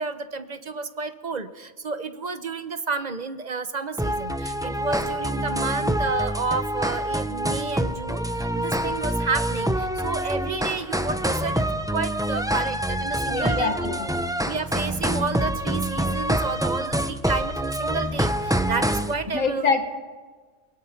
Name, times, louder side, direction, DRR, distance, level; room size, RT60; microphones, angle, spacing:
voice 1, 0.0-11.6 11.9-13.7 14.5-19.7, right 4 dB, 35° right, 11 dB, 0.9 m, -31 dB
sound 1, 4.0-19.1, right 1 dB, 5° right, 0.7 m, -26 dB
voice 2, 13.3-14.4 19.3-19.9, left 4 dB, 80° left, 7 dB, 2.1 m, -25 dB
22.5 x 21.5 x 5.8 m, 1.4 s
omnidirectional pair, 1.4 m